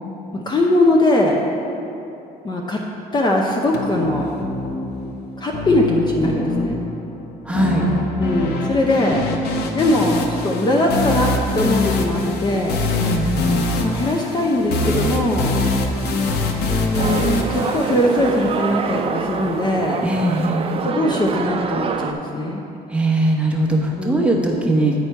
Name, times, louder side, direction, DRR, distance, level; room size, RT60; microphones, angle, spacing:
voice 1, 0.3-1.4 2.4-2.8 3.1-4.3 5.4-6.8 8.2-9.2 9.7-12.8 13.8-15.5 16.7-20.0 20.8-22.6 24.0-24.4, left 1 dB, 25° left, -1 dB, 0.6 m, -20 dB
sound 1, 3.7-18.7, left 2 dB, 75° left, 0.8 m, -24 dB
voice 2, 7.4-7.9 13.0-13.5 20.0-20.7 22.9-24.9, right 1 dB, 5° right, -2 dB, 1.0 m, -20 dB
sound 2, 17.0-22.1, right 5 dB, 35° right, 0.4 m, -26 dB
9.4 x 4.3 x 4.5 m, 2.8 s
cardioid pair, 110°, 17 cm